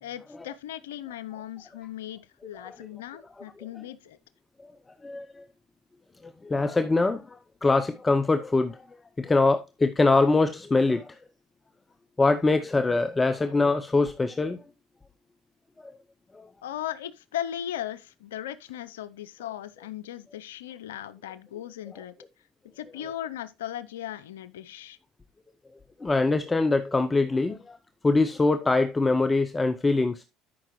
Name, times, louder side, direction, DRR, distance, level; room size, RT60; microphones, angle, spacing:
voice 1, 0.0-4.2 16.6-22.1 22.8-25.0, left 11 dB, 90° left, 0.6 m, -37 dB
voice 2, 5.0-5.4 6.2-8.8 9.2-11.2 12.2-14.6 16.3-16.5 26.0-27.8 28.0-30.2, left 3 dB, 20° left, 0.8 m, -23 dB
12.5 x 5.8 x 3.1 m
hypercardioid pair, 75°, 0 cm